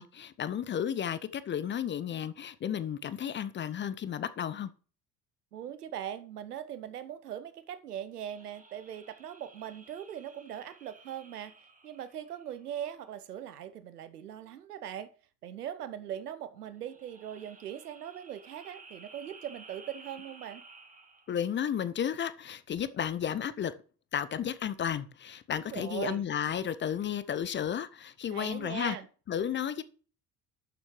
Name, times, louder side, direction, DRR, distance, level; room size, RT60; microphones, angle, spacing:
voice 1, 0.0-4.7 21.3-23.7 24.1-29.0 29.3-29.8, left 9 dB, 25° left, 0.6 m, -33 dB
voice 2, 5.5-11.5 11.8-15.1 15.4-20.6 25.6-26.2 28.3-29.1, right 10 dB, 75° right, 0.9 m, -40 dB
sound 1, 8.1-12.9 16.7-21.5, right 4 dB, 15° right, 1.5 m, -55 dB
11.5 x 7.1 x 3.1 m
figure-of-eight pair, 55°, 46 cm